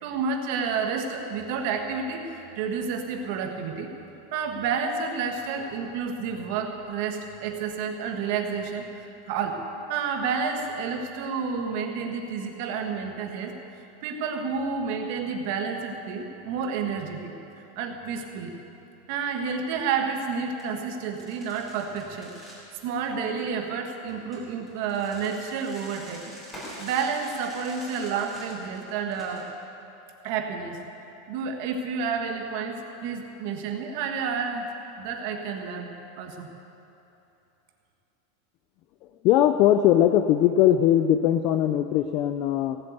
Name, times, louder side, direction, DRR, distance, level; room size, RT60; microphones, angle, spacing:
voice 1, 0.0-4.0 4.3-8.9 9.3-9.6 9.9-13.6 14.0-17.3 17.6-18.6 19.1-22.3 22.8-26.4 26.8-29.5 30.2-30.8 31.3-34.7 35.0-36.5, right 5 dB, 45° right, 3 dB, 1.4 m, -30 dB
sound 1, 20.6-20.7 21.1-22.6 24.1-29.4, equal, 10° left, 3.7 m, -45 dB
voice 2, 39.2-42.8, left 11 dB, 35° left, 8 dB, 0.4 m, -20 dB
17.0 x 8.0 x 8.0 m, 2.9 s
supercardioid pair, 175°, 0 cm